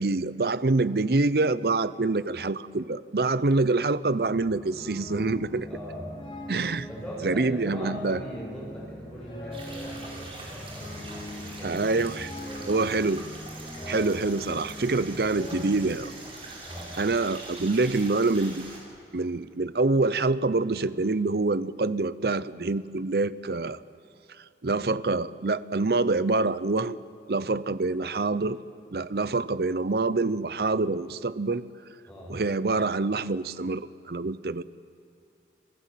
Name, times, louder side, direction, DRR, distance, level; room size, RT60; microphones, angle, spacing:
voice 1, 0.0-5.7 6.5-6.9 7.2-8.2 11.6-12.3 12.7-13.2 13.9-16.1 17.0-18.6 19.1-23.8 24.6-27.0 27.3-28.6 28.9-31.6 32.3-34.6, right 3 dB, 60° right, 17 dB, 0.7 m, -26 dB
sound 1, 4.2-15.9, left 1 dB, 30° left, 3.4 m, -41 dB
voice 2, 5.6-6.1 6.9-11.8 12.1-12.9 13.7-14.0 16.6-17.0 32.1-32.3, equal, 5° left, -5 dB, 7.9 m, -41 dB
sound 2, 9.5-18.8, right 2 dB, 30° right, 4.8 m, -43 dB
27.0 x 15.5 x 9.2 m, 2.7 s
head